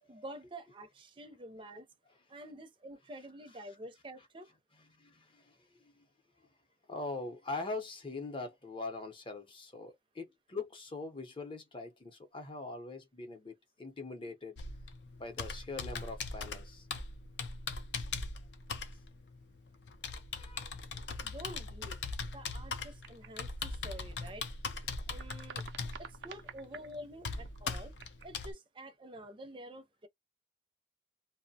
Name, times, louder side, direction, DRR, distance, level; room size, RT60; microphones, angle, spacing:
voice 1, 0.1-1.9 2.3-4.5 21.2-22.0 22.3-24.5 25.1-25.6 26.0-27.9 28.2-30.1, right 1 dB, 30° right, 0.5 m, -48 dB
voice 2, 5.0-6.0 6.9-14.6 15.2-16.9 20.4-20.7, left 3 dB, 30° left, 0.7 m, -42 dB
Computer keyboard, 14.6-28.5, left 4 dB, 80° left, 0.5 m, -40 dB
sound 1, 23.0-24.5 24.7-26.9 27.3-28.4, right 7 dB, 90° right, 0.4 m, -51 dB
2.6 x 2.1 x 2.7 m
head